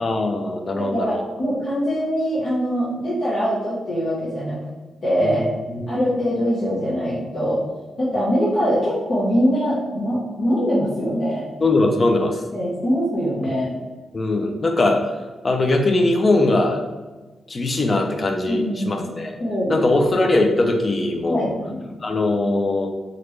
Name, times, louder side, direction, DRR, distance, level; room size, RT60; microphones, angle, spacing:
voice 1, 0.0-1.2 5.2-6.0 11.6-12.4 14.1-15.1 15.4-16.8 17.5-19.4 19.7-21.5 22.0-22.9, left 2 dB, 35° left, 3 dB, 0.4 m, -21 dB
voice 2, 0.8-4.6 5.0-5.5 5.9-7.6 8.0-11.4 12.5-13.8 18.5-19.1 19.4-20.0 21.2-21.8, equal, 50° left, -9 dB, 0.9 m, -23 dB
3.1 x 2.5 x 3.2 m, 1.2 s
cardioid pair, 105°, 0 cm